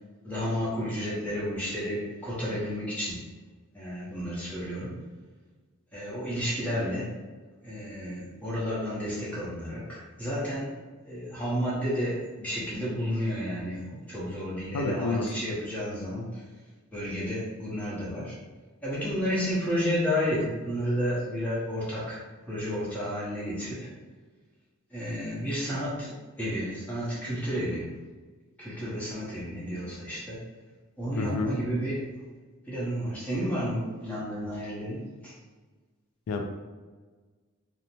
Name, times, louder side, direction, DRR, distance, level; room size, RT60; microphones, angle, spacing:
voice 1, 0.2-3.2 3.7-4.9 5.9-7.2 7.6-10.7 11.0-16.4 16.9-18.3 18.8-22.2 22.5-23.9 24.9-27.9 28.6-30.4 31.0-32.1 32.6-35.3, equal, 5° left, -9 dB, 0.8 m, -31 dB
voice 2, 14.7-15.3 31.2-31.5 36.3-36.4, left 3 dB, 80° left, 3 dB, 0.3 m, -28 dB
2.6 x 2.0 x 3.0 m, 1.4 s
head